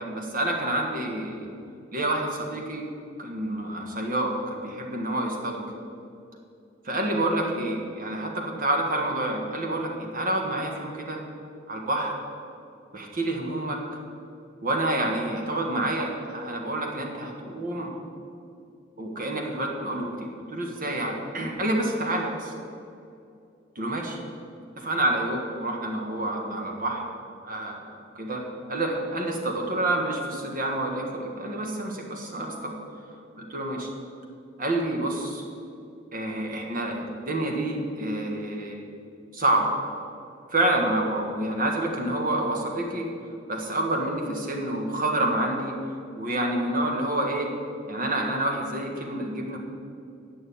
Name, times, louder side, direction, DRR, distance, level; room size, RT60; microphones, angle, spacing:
voice 1, 0.0-1.5 1.9-2.8 3.2-5.6 6.9-11.2 11.7-12.1 12.9-13.8 14.6-17.9 19.0-22.5 23.8-24.2 24.8-27.0 27.4-28.4 28.7-32.7 33.1-33.9 34.6-35.4 36.1-38.9 39.3-39.8 40.5-43.1 43.5-45.7 46.2-47.5 47.9-49.6, right 1 dB, 45° right, 1 dB, 1.6 m, -28 dB
9.3 x 6.1 x 8.5 m, 2.6 s
head